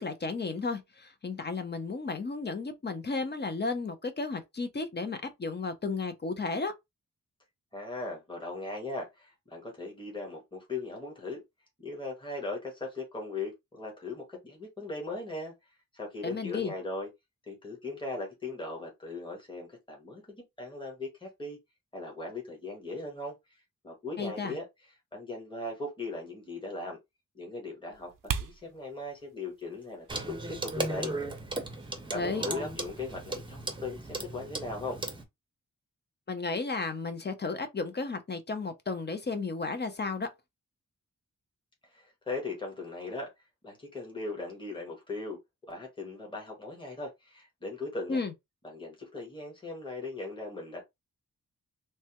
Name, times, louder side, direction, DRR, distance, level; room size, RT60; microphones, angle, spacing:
voice 1, 0.0-6.7 16.2-16.7 24.2-24.6 32.1-32.4 36.3-40.3 48.1-48.3, left 4 dB, 35° left, 0.5 m, -33 dB
voice 2, 7.7-11.4 11.8-15.5 15.9-17.1 17.5-21.6 21.9-24.7 25.1-27.0 27.3-31.1 32.1-35.0 41.8-43.3 43.6-45.4 45.7-48.2 48.6-50.8, left 2 dB, 15° left, 1.2 m, -39 dB
sound 1, 27.9-33.4, right 7 dB, 80° right, 0.5 m, -43 dB
Clock, 30.1-35.2, right 2 dB, 15° right, 0.6 m, -36 dB
3.3 x 2.1 x 2.8 m
wide cardioid pair, 135°, 32 cm